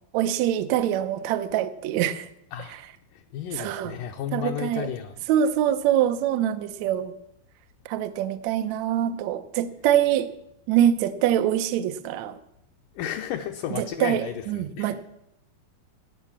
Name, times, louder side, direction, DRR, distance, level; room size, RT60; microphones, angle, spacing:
voice 1, 0.1-2.3 3.6-3.9 4.3-4.9 5.3-7.1 7.9-10.3 10.7-12.4 13.8-15.0, right 10 dB, 80° right, 10 dB, 1.6 m, -24 dB
voice 2, 2.5-2.8 3.1-5.3 13.0-15.0, left 10 dB, 75° left, 4 dB, 2.1 m, -33 dB
16.5 x 9.3 x 7.3 m, 0.80 s
omnidirectional pair, 4.5 m